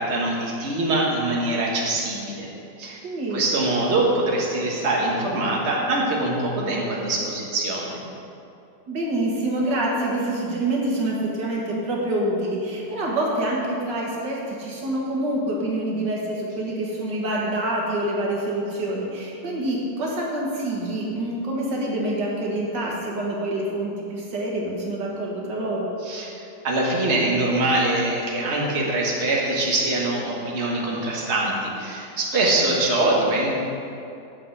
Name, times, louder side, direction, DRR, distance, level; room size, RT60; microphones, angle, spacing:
voice 1, 0.0-2.5 2.8-3.0 3.3-8.0 26.0-26.4 26.6-33.5, right 2 dB, 40° right, -3 dB, 1.8 m, -23 dB
voice 2, 3.0-3.4 8.9-25.9, right 1 dB, 85° right, -3 dB, 2.3 m, -26 dB
9.7 x 5.4 x 7.7 m, 2.7 s
omnidirectional pair, 1.8 m